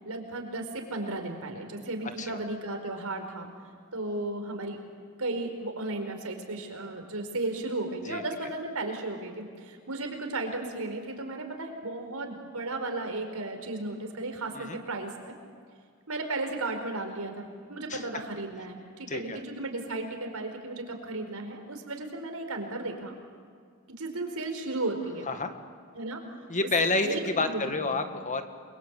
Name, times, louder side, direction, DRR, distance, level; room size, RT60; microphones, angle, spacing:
voice 1, 0.0-3.5 3.9-4.8 5.2-15.3 16.1-23.2 24.0-25.3 25.9-26.2 27.0-28.0, right 2 dB, 85° right, 4 dB, 4.8 m, -34 dB
voice 2, 19.1-19.4 25.3-25.5 26.5-27.1 27.4-28.4, left 3 dB, 35° left, 7 dB, 1.9 m, -29 dB
29.5 x 23.0 x 8.5 m, 2.1 s
head